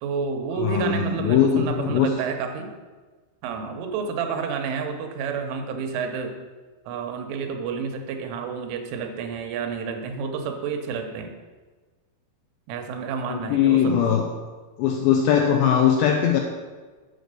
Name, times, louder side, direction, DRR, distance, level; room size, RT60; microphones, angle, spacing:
voice 1, 0.0-2.7 3.4-6.3 6.9-11.3 12.7-14.2, right 5 dB, 80° right, 4 dB, 3.3 m, -30 dB
voice 2, 0.5-2.1 13.3-14.3 14.8-16.4, left 8 dB, 80° left, 2 dB, 2.5 m, -20 dB
8.0 x 6.5 x 6.6 m, 1.4 s
omnidirectional pair, 5.7 m